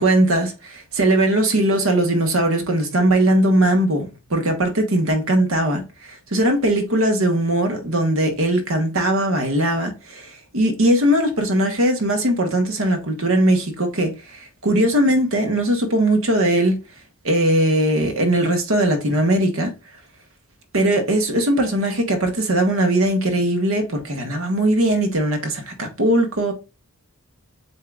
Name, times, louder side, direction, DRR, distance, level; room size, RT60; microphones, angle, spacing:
voice 1, 0.0-16.8 17.2-19.7 20.7-26.5, right 1 dB, 65° right, 1.2 m, -19 dB
7.8 x 2.8 x 2.4 m
head